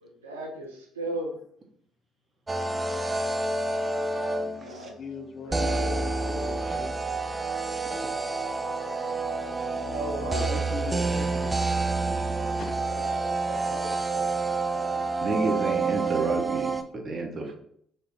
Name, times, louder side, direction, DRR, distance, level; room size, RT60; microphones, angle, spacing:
voice 1, 0.0-1.4 4.6-5.0 5.5-6.6 9.8-10.9 12.8-14.7, right 1 dB, 85° right, 1 dB, 0.5 m, -37 dB
sound 1, 2.5-4.8 5.5-16.8, right 3 dB, 20° right, 0.3 m, -28 dB
voice 2, 4.6-6.9 10.2-11.8 12.6-12.7, left 5 dB, 50° left, 6 dB, 0.4 m, -40 dB
voice 3, 15.2-17.6, right 2 dB, 40° right, 2 dB, 0.7 m, -30 dB
3.1 x 2.2 x 3.5 m, 0.65 s
figure-of-eight pair, 50°, 0 cm